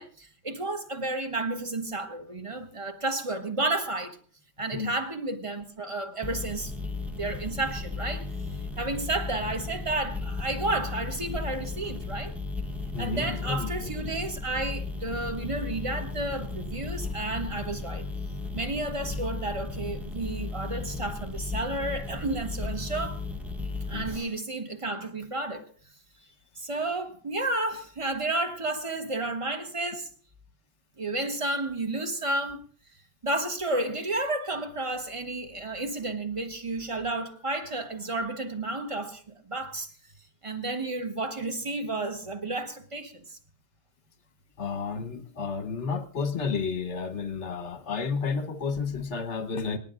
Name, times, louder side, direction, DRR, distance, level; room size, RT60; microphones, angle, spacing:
voice 1, 0.0-4.2 4.6-6.7 7.1-8.3 8.8-12.4 13.0-18.1 18.5-23.2 23.9-25.7 26.6-30.1 31.0-32.6 33.2-39.9 40.4-43.4, right 2 dB, 20° right, 1.0 m, -31 dB
sound 1, 6.2-24.2, left 3 dB, ahead, 0.4 m, -35 dB
voice 2, 12.9-13.9 23.9-24.1 44.6-49.8, left 5 dB, 45° left, 1.2 m, -31 dB
26.0 x 10.5 x 2.5 m
omnidirectional pair, 2.0 m